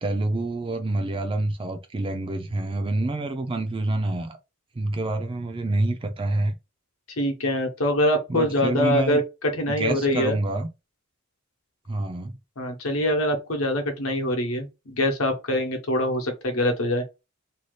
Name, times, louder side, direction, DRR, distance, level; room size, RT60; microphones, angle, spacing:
voice 1, 0.0-4.4 4.8-6.6 8.3-9.2 9.8-10.7 11.9-12.3, right 2 dB, 25° right, 0.4 m, -27 dB
voice 2, 7.1-10.4 12.6-17.0, left 1 dB, 65° left, 0.9 m, -24 dB
2.7 x 2.3 x 3.2 m
head